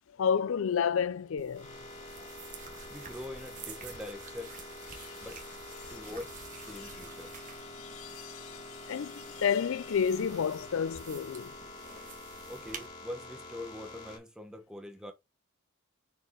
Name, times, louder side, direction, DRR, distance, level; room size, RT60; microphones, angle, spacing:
voice 1, 0.2-1.7 4.9-5.3 5.8-6.1 6.8-6.9 7.7-11.6, left 7 dB, 65° left, 0.4 m, -31 dB
sound 1, 0.7-14.2, left 2 dB, 30° left, 2.7 m, -47 dB
sound 2, 1.4-12.9, right 5 dB, 35° right, 1.2 m, -50 dB
voice 2, 2.9-4.5 5.2-5.4 5.9-6.4 6.6-7.3 12.5-15.1, left 1 dB, 5° right, 1.0 m, -43 dB
6.9 x 4.6 x 3.0 m
head